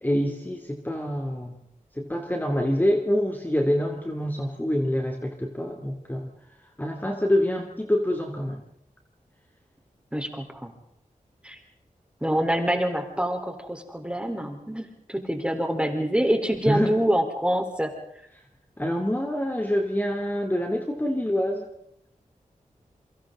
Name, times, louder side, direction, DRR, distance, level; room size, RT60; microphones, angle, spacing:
voice 1, 0.0-1.5 1.9-6.3 6.8-8.6 16.7-16.9 18.8-21.7, equal, 15° left, 2 dB, 2.9 m, -26 dB
voice 2, 10.1-10.7 11.4-11.6 12.2-17.9, equal, 10° right, 4 dB, 3.9 m, -26 dB
27.5 x 24.5 x 3.9 m, 0.72 s
wide cardioid pair, 55°, 14 cm